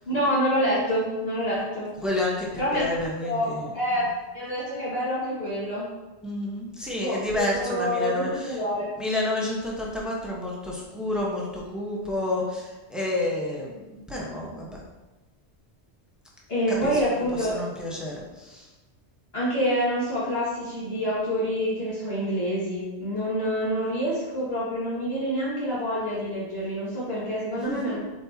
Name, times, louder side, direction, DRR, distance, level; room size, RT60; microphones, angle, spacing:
voice 1, 0.1-1.9 2.6-2.8 3.2-4.1 4.3-5.9 7.0-8.9 16.5-17.6 19.3-28.0, equal, 65° left, -10 dB, 2.2 m, -27 dB
voice 2, 2.0-3.7 6.2-8.6 9.0-14.8 16.7-17.0 17.3-18.7 27.6-28.0, left 2 dB, ahead, -3 dB, 1.1 m, -30 dB
7.8 x 4.3 x 2.9 m, 1.1 s
omnidirectional pair, 1.1 m